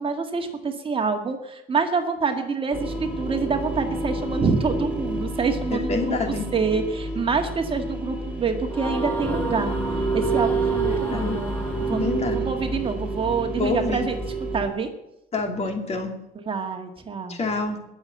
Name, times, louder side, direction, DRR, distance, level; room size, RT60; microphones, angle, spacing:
voice 1, 0.0-9.7 10.1-14.9 16.4-17.4, right 5 dB, 30° right, 5 dB, 1.9 m, -27 dB
sound 1, 2.7-14.7, right 2 dB, 5° right, 3.3 m, -28 dB
voice 2, 5.7-6.5 11.0-11.4 12.0-12.4 13.6-14.1 15.3-16.1 17.3-17.8, left 3 dB, 40° left, 4 dB, 2.7 m, -27 dB
sound 2, 8.7-12.5, right 1 dB, 10° left, 5.6 m, -35 dB
20.5 x 7.0 x 7.8 m, 0.85 s
cardioid pair, 110°, 17 cm